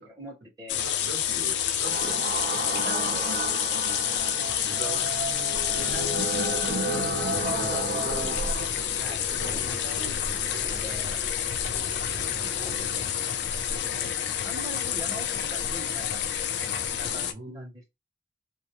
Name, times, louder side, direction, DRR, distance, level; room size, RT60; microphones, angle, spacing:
voice 1, 0.0-0.8 2.7-4.0 5.8-7.1 8.9-9.2 9.7-10.4 10.6-11.2 12.4-13.1 13.4-17.9, right 1 dB, 20° right, 0.7 m, -43 dB
sound 1, 0.7-17.3, left 9 dB, 80° left, 0.3 m, -29 dB
voice 2, 0.7-3.0 4.6-5.1 6.5-6.8 7.4-8.8 9.3-9.8 10.2-11.1 11.9-12.4 17.3-17.8, right 1 dB, 80° right, 0.7 m, -42 dB
sound 2, 1.8-8.7, right 3 dB, 50° right, 0.4 m, -32 dB
sound 3, 5.5-12.9, equal, 20° left, 0.4 m, -43 dB
2.2 x 2.0 x 2.8 m
head